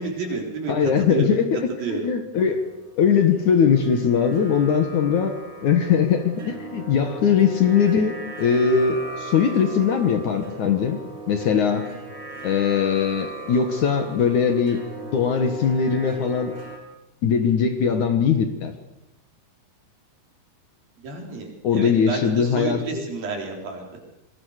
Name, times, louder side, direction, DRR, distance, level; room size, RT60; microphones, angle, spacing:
voice 1, 0.0-1.3 1.8-2.1 12.0-12.1 21.0-23.8, right 4 dB, 60° right, 1 dB, 5.7 m, -30 dB
voice 2, 0.7-2.6 3.0-5.3 5.6-11.0 11.3-11.8 12.4-14.8 15.1-16.5 17.2-18.7 21.6-23.1, left 7 dB, 60° left, 7 dB, 2.6 m, -20 dB
sound 1, 2.3-16.8, right 2 dB, 35° right, 4.8 m, -38 dB
26.0 x 21.0 x 6.6 m, 0.90 s
omnidirectional pair, 4.6 m